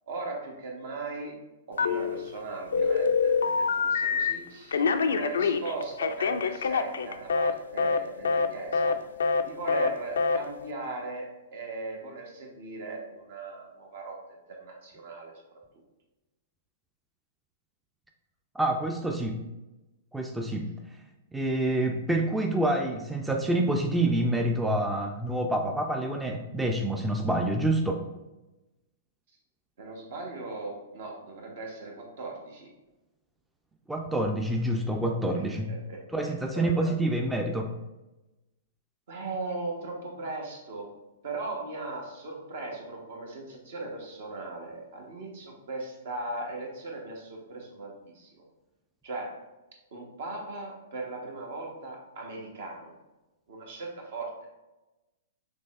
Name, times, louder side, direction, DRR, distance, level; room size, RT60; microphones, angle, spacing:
voice 1, 0.1-9.0 9.4-14.2 14.5-15.3 29.8-32.7 35.7-36.0 36.5-36.9 39.1-40.9 41.2-48.3 49.0-49.4 49.9-52.9 53.5-54.3, right 3 dB, 65° right, 0 dB, 1.2 m, -38 dB
Telephone, 1.8-2.4 2.7-4.3 4.7-7.5 7.8-8.0 8.2-8.5 8.7-8.9 9.2-9.4 9.7-9.9 10.2-10.4, left 5 dB, 80° left, 0.3 m, -25 dB
voice 2, 18.5-19.4 20.1-20.7 21.3-28.0 33.9-35.7 36.1-37.7, right 1 dB, 5° right, 2 dB, 0.4 m, -27 dB
5.4 x 3.2 x 2.5 m, 1.0 s
hypercardioid pair, 120°, 0 cm